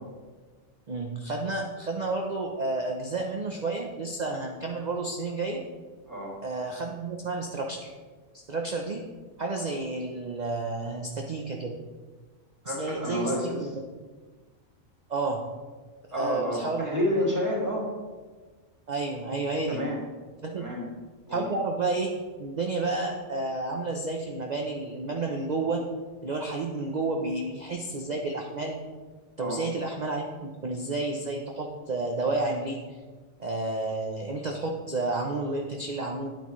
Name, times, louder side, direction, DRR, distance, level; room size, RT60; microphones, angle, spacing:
voice 1, 0.9-5.6 6.4-7.9 8.5-9.0 9.4-11.7 12.7-13.7 15.1-15.4 16.1-17.0 18.9-19.8 20.4-20.7 21.3-22.1 22.4-25.8 26.2-28.8 29.4-32.8 33.4-36.3, right 3 dB, 40° right, 1 dB, 0.7 m, -31 dB
voice 2, 6.1-6.4 12.6-13.8 16.1-17.9 19.7-20.0 20.6-20.9 21.3-21.4 29.4-29.6, left 1 dB, 15° right, -3 dB, 2.3 m, -29 dB
10.0 x 9.1 x 3.1 m, 1.4 s
omnidirectional pair, 1.4 m